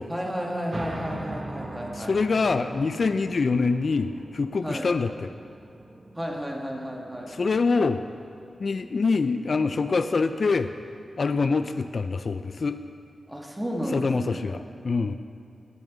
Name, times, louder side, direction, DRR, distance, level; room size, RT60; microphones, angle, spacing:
voice 1, 0.1-2.2 4.6-4.9 6.2-7.4 13.3-14.6, equal, 10° right, 0 dB, 1.7 m, -32 dB
sound 1, 0.7-11.8, right 2 dB, 35° right, 1.0 m, -42 dB
voice 2, 2.0-5.3 7.3-8.0 8.6-10.7 11.2-12.8 13.9-15.2, left 4 dB, 60° left, 10 dB, 0.4 m, -25 dB
10.5 x 6.4 x 8.7 m, 2.5 s
cardioid pair, 70°, 0 cm